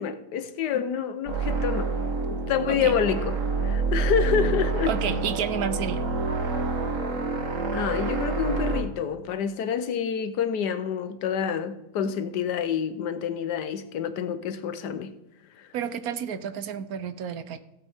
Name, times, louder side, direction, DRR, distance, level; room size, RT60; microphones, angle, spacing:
voice 1, 0.0-1.9 2.3-4.9 7.7-15.1 15.6-15.7, left 8 dB, 85° left, 1.4 m, -28 dB
sound 1, 1.3-8.8, right 4 dB, 50° right, 2.0 m, -27 dB
voice 2, 4.9-6.1 15.7-17.6, right 8 dB, 70° right, 1.1 m, -30 dB
16.5 x 8.2 x 3.5 m
omnidirectional pair, 1.8 m